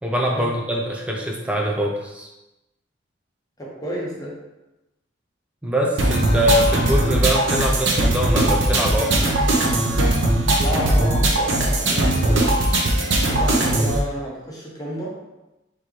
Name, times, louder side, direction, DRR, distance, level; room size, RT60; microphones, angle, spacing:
voice 1, 0.0-2.3 5.6-9.3 13.1-13.2, equal, 5° right, 0 dB, 0.5 m, -23 dB
voice 2, 3.6-4.4 10.6-12.6 13.3-15.1, equal, 20° left, -4 dB, 0.9 m, -30 dB
sound 1, 6.0-14.0, right 1 dB, 70° right, 0.7 m, -19 dB
4.2 x 3.5 x 3.2 m, 0.99 s
head